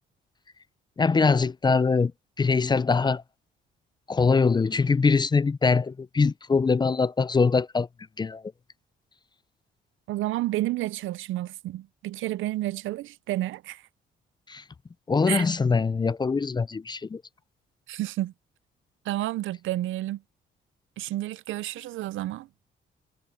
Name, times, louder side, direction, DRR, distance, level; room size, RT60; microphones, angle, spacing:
voice 1, 1.0-2.1 2.4-3.2 4.1-7.9 8.2-8.4 14.5-14.6 15.1-17.2, left 4 dB, 20° left, 0.5 m, -23 dB
voice 2, 10.1-13.9 15.3-15.5 17.9-18.3 19.0-20.2 21.0-22.5, right 15 dB, 80° right, 0.6 m, -30 dB
cardioid pair, 90°, 20 cm